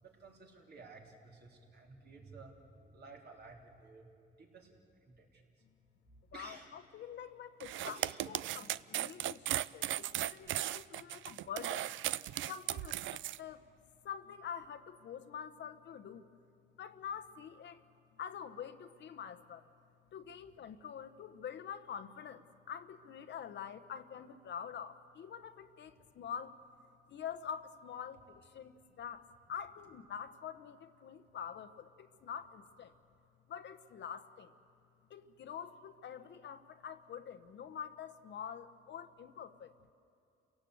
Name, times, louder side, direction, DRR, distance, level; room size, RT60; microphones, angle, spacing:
voice 1, 0.0-4.1 4.4-5.4 6.3-6.7 7.7-8.6, right 3 dB, 55° right, 0 dB, 3.4 m, -54 dB
voice 2, 6.3-8.0 8.3-11.9 12.5-13.6 14.0-16.3 16.8-17.8 18.2-19.6 20.1-26.5 27.1-32.9 33.5-34.5 35.1-39.7, left 8 dB, 65° left, 11 dB, 1.0 m, -46 dB
sound 1, 7.6-13.4, right 13 dB, 75° right, 0.5 m, -37 dB
29.0 x 17.0 x 8.0 m, 2.5 s
cardioid pair, 90°, 20 cm